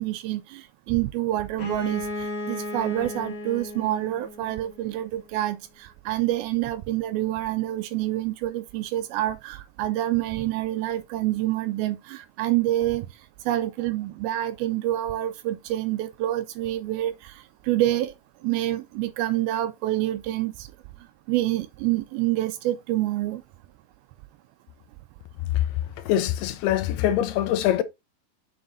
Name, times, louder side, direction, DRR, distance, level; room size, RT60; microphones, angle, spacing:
voice 1, 0.0-13.1 13.5-18.1 18.4-20.7 21.3-23.4, right 14 dB, 80° right, 2.3 m, -27 dB
Bowed string instrument, 1.5-5.2, left 2 dB, 50° left, 1.3 m, -35 dB
voice 2, 26.0-27.8, left 12 dB, 80° left, 2.7 m, -23 dB
7.8 x 6.8 x 2.6 m
omnidirectional pair, 4.7 m